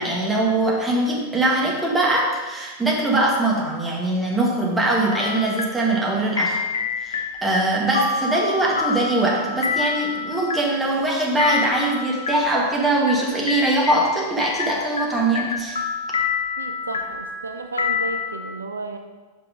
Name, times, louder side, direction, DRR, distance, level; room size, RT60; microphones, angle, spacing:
voice 1, 0.0-6.6 7.0-15.8, right 2 dB, 10° right, -3 dB, 1.7 m, -22 dB
sound 1, 5.1-18.3, left 5 dB, 70° left, 0.8 m, -28 dB
voice 2, 16.6-19.0, right 3 dB, 75° right, 6 dB, 0.4 m, -33 dB
5.8 x 5.4 x 5.1 m, 1.3 s
figure-of-eight pair, 90°, 0 cm